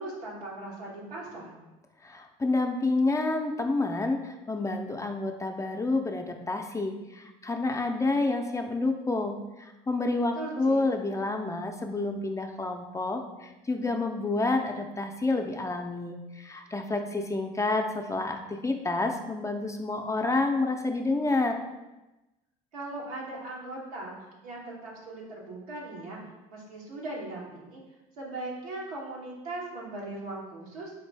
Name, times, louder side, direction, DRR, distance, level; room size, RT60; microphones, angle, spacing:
voice 1, 0.0-1.5 10.3-10.8 22.7-24.1 24.4-26.2 26.5-27.8 28.2-30.9, right 2 dB, 90° right, -4 dB, 1.0 m, -39 dB
voice 2, 2.0-21.6, left 2 dB, 15° left, 4 dB, 0.4 m, -29 dB
4.5 x 2.5 x 3.3 m, 1.0 s
hypercardioid pair, 70°, 19 cm